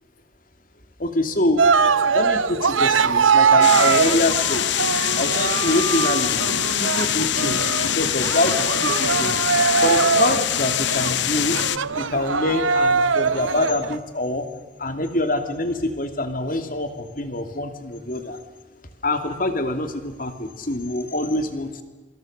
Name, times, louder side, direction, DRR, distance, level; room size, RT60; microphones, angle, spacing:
voice 1, 1.0-1.7 2.1-4.6 5.1-6.4 6.8-9.4 9.8-11.6 12.0-14.5 14.8-18.4 19.0-21.8, left 2 dB, 45° left, 7 dB, 2.7 m, -25 dB
Cheering, 1.6-14.0, right 5 dB, 90° right, 0.9 m, -21 dB
sound 1, 3.6-11.8, left 11 dB, 65° left, 0.7 m, -24 dB
27.0 x 26.0 x 6.6 m, 1.4 s
head